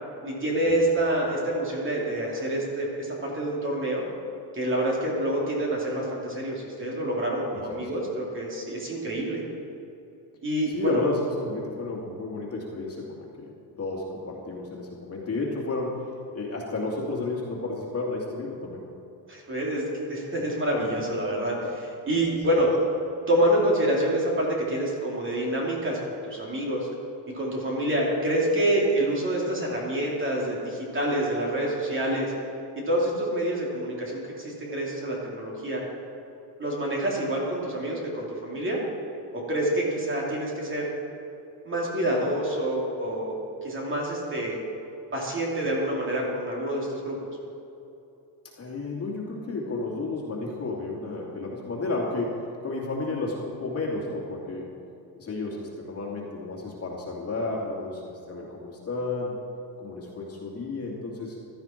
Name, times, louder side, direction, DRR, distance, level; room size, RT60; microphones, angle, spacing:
voice 1, 0.2-4.0 4.5-9.4 10.4-11.0 19.3-22.7 23.3-26.9 27.3-32.3 32.9-35.8 36.6-38.8 39.3-40.9 41.6-43.4 43.6-44.6 45.1-47.1, right 1 dB, 25° right, -3 dB, 3.0 m, -27 dB
voice 2, 10.7-13.5 13.8-16.1 16.3-18.8 48.6-54.7 55.2-59.4 59.8-61.4, left 2 dB, 30° left, -3 dB, 2.5 m, -32 dB
16.0 x 13.0 x 4.5 m, 2.8 s
cardioid pair, 160°, 46 cm